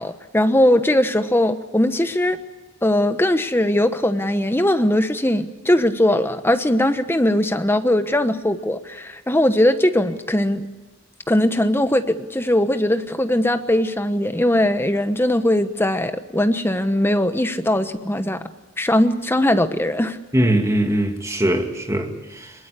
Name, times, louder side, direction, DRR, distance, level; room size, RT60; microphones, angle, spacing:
voice 1, 0.0-2.4 2.8-10.7 11.3-18.5 18.8-20.2, left 1 dB, 10° left, 1.1 m, -20 dB
voice 2, 20.3-22.5, right 1 dB, 15° right, 2.5 m, -21 dB
22.0 x 22.0 x 8.4 m
head